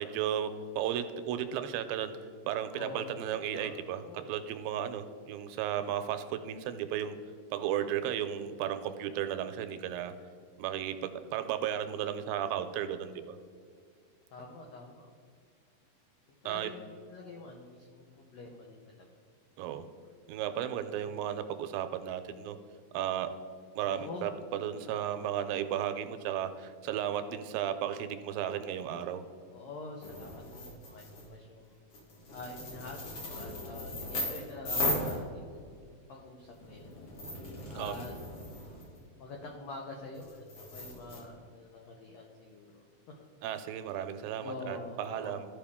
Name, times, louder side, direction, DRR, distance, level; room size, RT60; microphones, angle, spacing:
voice 1, 0.0-2.1 2.5-4.0 4.3-7.2 7.5-10.1 10.6-13.4 16.5-16.7 19.6-19.8 20.3-22.6 22.9-23.3 23.8-29.2 37.8-38.1 43.4-45.5, right 10 dB, 80° right, 9 dB, 2.2 m, -34 dB
voice 2, 2.6-3.1 3.4-4.3 14.3-15.1 16.3-19.1 23.8-24.3 24.9-25.0 29.5-31.8 32.3-36.9 37.7-38.1 39.1-42.8 43.2-43.3 44.4-45.4, left 3 dB, 90° left, 1 dB, 1.5 m, -46 dB
sound 1, 30.0-31.3 31.9-35.8 36.4-39.0 40.1-41.2, left 1 dB, 45° left, 1.7 m, -37 dB
13.5 x 5.5 x 3.5 m, 2.1 s
omnidirectional pair, 4.2 m